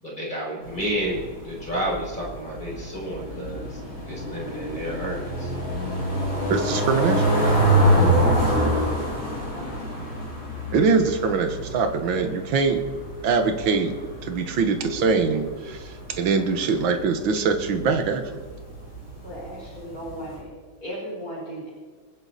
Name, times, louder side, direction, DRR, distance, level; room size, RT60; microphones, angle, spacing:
voice 1, 0.0-3.8 4.1-5.5, right 1 dB, 20° left, -5 dB, 5.3 m, -31 dB
sound 1, 0.6-20.4, right 1 dB, 70° left, 4.8 m, -26 dB
voice 2, 6.5-7.3 10.7-12.9 13.2-18.4, right 5 dB, 70° right, 6 dB, 2.1 m, -23 dB
voice 3, 9.4-10.1 19.2-20.4 20.8-21.7, equal, 45° left, -9 dB, 6.0 m, -36 dB
26.0 x 9.8 x 4.2 m, 1.4 s
omnidirectional pair, 2.2 m